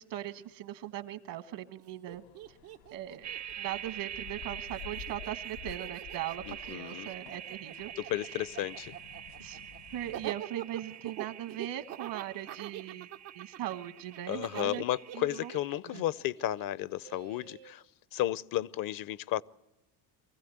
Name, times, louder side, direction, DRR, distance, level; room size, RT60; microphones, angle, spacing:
voice 1, 0.0-2.2 2.9-3.3 3.6-7.9 9.4-9.6 9.9-13.1 13.3-14.8 15.1-15.5 15.9-16.0, right 12 dB, 65° right, 1.5 m, -39 dB
Laughter, 1.8-1.9 2.1-4.4 4.7-17.7, right 12 dB, 85° right, 1.2 m, -45 dB
sound 1, 2.1-10.3, left 8 dB, 85° left, 1.7 m, -51 dB
sound 2, 3.2-15.7, right 10 dB, 40° right, 0.6 m, -45 dB
voice 2, 6.5-7.1 8.0-9.0 14.3-17.8 18.1-19.4, left 13 dB, 50° left, 0.6 m, -33 dB
24.5 x 15.5 x 7.9 m
supercardioid pair, 80°, 45 cm